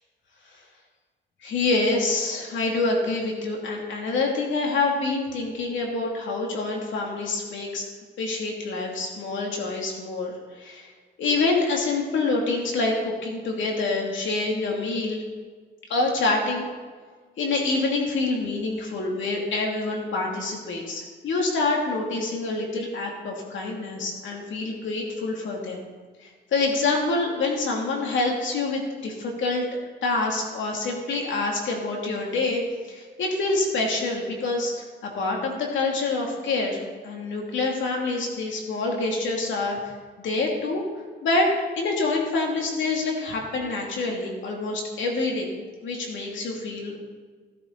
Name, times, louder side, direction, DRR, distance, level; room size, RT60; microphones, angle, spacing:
voice 1, 1.4-7.8 8.2-10.9 11.2-15.2 15.9-16.7 17.4-25.9 26.2-29.6 30.0-32.6 32.9-34.7 35.0-39.8 40.2-40.8 41.2-45.5 45.8-47.0, left 3 dB, 70° left, 0 dB, 2.7 m, -26 dB
16.0 x 10.5 x 4.0 m, 1.5 s
cardioid pair, 90°, 20 cm